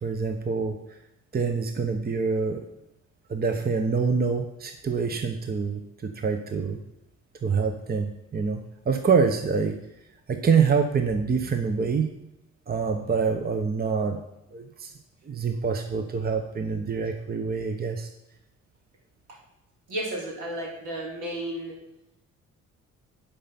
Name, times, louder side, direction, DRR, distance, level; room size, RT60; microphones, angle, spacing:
voice 1, 0.0-0.8 1.3-2.6 3.3-6.8 7.4-9.8 10.3-12.1 12.7-14.2 14.5-14.9 15.3-18.1, right 5 dB, 30° right, 6 dB, 1.0 m, -26 dB
voice 2, 19.9-21.8, right 1 dB, 80° right, -3 dB, 4.1 m, -33 dB
11.0 x 5.5 x 5.9 m, 0.87 s
cardioid pair, 90°, 30 cm